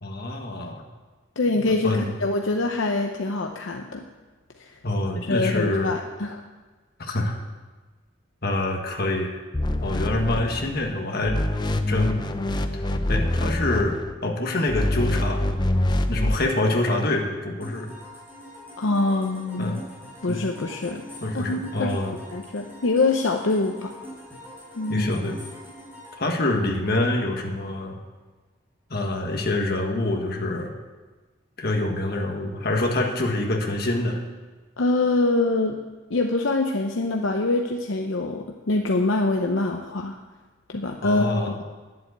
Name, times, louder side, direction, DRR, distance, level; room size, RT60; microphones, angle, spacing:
voice 1, 0.0-0.8 1.8-2.1 4.8-5.9 7.0-7.4 8.4-9.4 9.8-11.4 11.9-12.3 12.7-12.8 13.1-15.4 16.1-17.9 19.6-19.8 20.3-20.4 21.2-22.2 24.9-25.4 26.2-28.0 28.9-30.7 31.6-34.2 41.0-41.6, left 2 dB, 50° left, 2 dB, 1.7 m, -26 dB
voice 2, 1.4-4.0 4.6-4.7 5.2-6.4 18.8-19.8 20.2-21.0 21.3-22.0 22.3-23.9 24.7-25.1 34.8-35.8 36.1-40.2 40.7-41.4, left 2 dB, 75° left, 3 dB, 0.7 m, -24 dB
sound 1, 9.5-10.9 11.2-14.1 14.7-16.4, left 1 dB, 20° left, 0.5 m, -25 dB
sound 2, 17.6-27.3, left 1 dB, 10° right, 4.3 m, -44 dB
11.0 x 7.7 x 8.1 m, 1.3 s
head